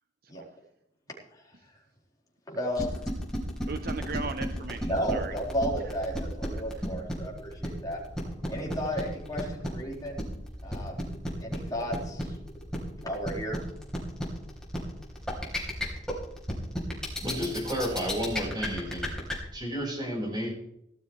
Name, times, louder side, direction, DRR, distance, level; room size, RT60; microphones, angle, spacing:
voice 1, 2.5-3.0 4.8-8.0 8.5-10.3 10.6-11.1 11.4-12.4 13.0-13.6, equal, 20° left, -3 dB, 4.7 m, -33 dB
sound 1, 2.7-19.3, equal, 5° left, 4.2 m, -32 dB
voice 2, 3.7-5.3 6.8-6.9, right 4 dB, 55° right, 8 dB, 0.8 m, -37 dB
voice 3, 17.2-19.1 19.5-20.5, equal, 25° right, -1 dB, 5.3 m, -31 dB
18.0 x 13.0 x 3.3 m, 0.79 s
head